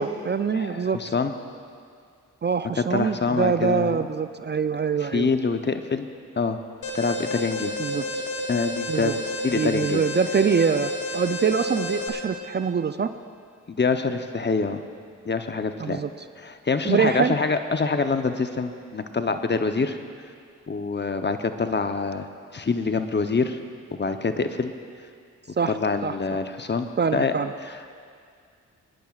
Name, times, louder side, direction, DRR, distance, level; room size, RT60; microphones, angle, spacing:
voice 1, 0.0-1.0 2.4-5.3 7.8-8.2 8.9-9.1 9.5-13.1 15.8-16.1 16.9-17.3 25.6-25.8 26.0-26.1 27.0-27.5, right 6 dB, 35° right, 10 dB, 0.4 m, -24 dB
voice 2, 0.5-1.3 2.8-4.0 5.0-6.1 6.4-6.6 6.9-7.7 8.5-10.0 13.7-14.8 15.2-16.0 16.4-20.0 20.7-22.3 22.5-23.6 23.9-24.7 25.7-27.3 27.6-27.9, left 4 dB, 35° left, 8 dB, 0.8 m, -26 dB
Alarm, 6.8-12.1, left 1 dB, 85° left, 1.3 m, -30 dB
22.5 x 10.0 x 2.4 m, 2.2 s
supercardioid pair, 40°, 33 cm